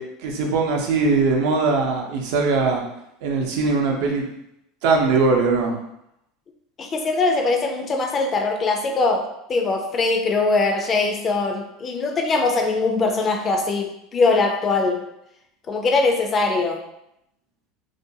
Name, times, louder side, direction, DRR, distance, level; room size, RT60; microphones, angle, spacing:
voice 1, 0.0-2.8 3.2-4.3 4.8-5.8, right 4 dB, 70° right, 1 dB, 0.5 m, -21 dB
voice 2, 6.8-15.0 15.7-16.8, left 3 dB, 30° left, 3 dB, 0.4 m, -21 dB
2.4 x 2.2 x 2.7 m, 0.81 s
supercardioid pair, 130°, 0 cm